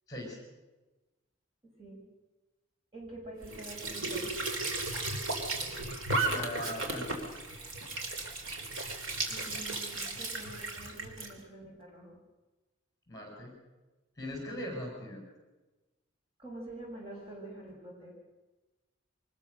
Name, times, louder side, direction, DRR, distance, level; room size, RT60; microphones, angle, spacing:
voice 1, 0.1-0.4 6.2-7.2 13.1-13.6 14.2-15.2, left 1 dB, 20° left, 1 dB, 5.7 m, -40 dB
voice 2, 2.9-4.4 9.3-12.2 16.4-18.2, right 2 dB, 25° right, -2 dB, 6.7 m, -46 dB
Squeak / Sink (filling or washing) / Trickle dribble, 3.4-11.3, right 2 dB, 85° right, 3.4 m, -35 dB
24.0 x 20.0 x 6.5 m, 1.1 s
head